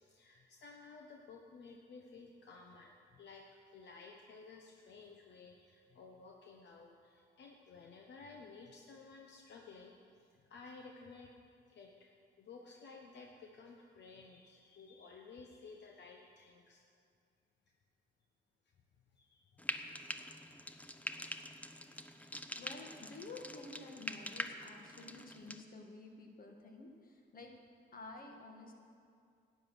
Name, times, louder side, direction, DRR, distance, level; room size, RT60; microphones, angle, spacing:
voice 1, 0.0-9.9 10.3-11.3 11.7-16.8 19.1-19.7, left 4 dB, 60° left, 1 dB, 1.0 m, -55 dB
Frying (food), 19.6-25.6, left 1 dB, 5° left, 0.6 m, -45 dB
voice 2, 22.6-27.5 27.9-28.8, left 3 dB, 45° left, 2 dB, 1.9 m, -51 dB
11.5 x 9.4 x 6.2 m, 2.4 s
cardioid pair, 90°, 20 cm